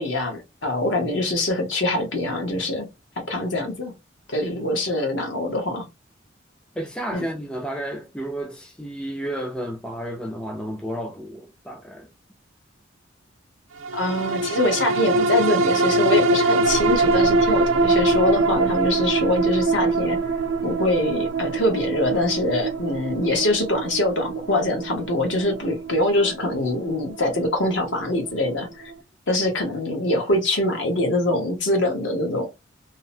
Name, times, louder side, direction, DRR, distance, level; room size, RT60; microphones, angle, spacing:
voice 1, 0.0-2.9 3.2-3.9 4.3-5.9 7.1-7.2 13.9-20.2 20.6-28.9 29.3-32.5, left 1 dB, 60° left, 1.0 m, -24 dB
voice 2, 6.8-12.1, right 1 dB, 5° left, 0.3 m, -32 dB
sound 1, 13.8-28.5 28.9-29.0, right 3 dB, 75° right, 0.5 m, -23 dB
2.8 x 2.0 x 2.7 m
head